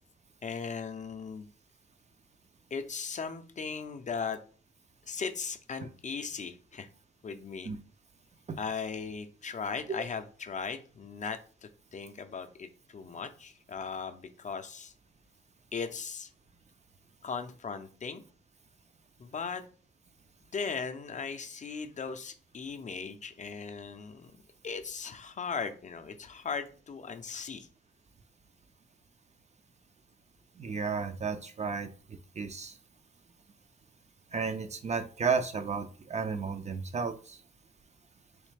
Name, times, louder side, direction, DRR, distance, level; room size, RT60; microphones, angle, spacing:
voice 1, 0.4-1.5 2.7-4.4 5.1-6.9 7.2-7.7 8.6-14.9 15.7-16.3 17.2-18.2 19.2-19.6 20.5-24.4 24.6-27.7, left 5 dB, 35° left, 0.4 m, -38 dB
voice 2, 30.6-31.9 32.4-32.8 34.3-37.4, right 5 dB, 35° right, 0.4 m, -33 dB
3.3 x 3.1 x 3.2 m
cardioid pair, 95°, 20 cm